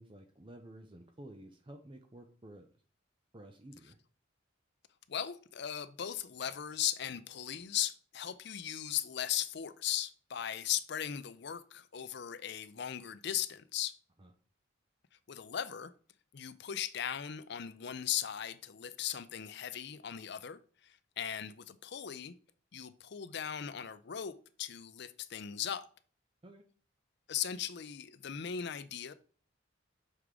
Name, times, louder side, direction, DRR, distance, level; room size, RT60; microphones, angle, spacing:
voice 1, 0.0-2.7 3.3-4.0 14.2-14.3 26.4-26.6, right 1 dB, 25° right, 0.6 m, -52 dB
voice 2, 5.1-14.0 15.3-15.9 16.3-22.3 22.7-25.9 27.3-29.1, left 10 dB, 55° left, 0.5 m, -38 dB
6.6 x 4.7 x 3.6 m
head